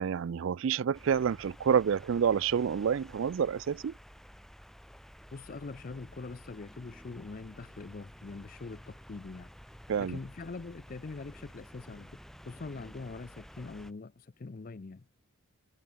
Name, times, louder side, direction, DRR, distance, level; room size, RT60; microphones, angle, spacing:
voice 1, 0.0-3.9 9.9-10.2, right 7 dB, 60° right, 0.3 m, -28 dB
sound 1, 0.9-13.9, equal, ahead, 2.5 m, -52 dB
voice 2, 5.3-9.5 10.0-12.2 12.5-15.1, left 3 dB, 40° left, 0.5 m, -43 dB
head